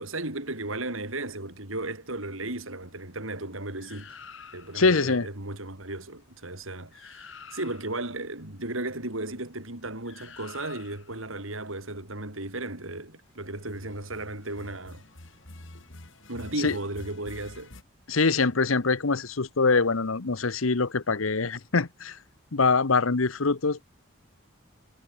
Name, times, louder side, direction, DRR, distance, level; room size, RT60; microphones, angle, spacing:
voice 1, 0.0-4.2 4.5-15.0 16.3-17.7, right 2 dB, 75° right, 5.3 m, -35 dB
sound 1, 3.8-4.9 6.6-6.7 6.9-8.1 10.0-11.2 13.5-17.8, left 3 dB, 65° left, 3.1 m, -48 dB
voice 2, 4.7-5.3 16.6-16.8 18.1-22.2 22.5-23.8, left 4 dB, 80° left, 1.1 m, -24 dB
head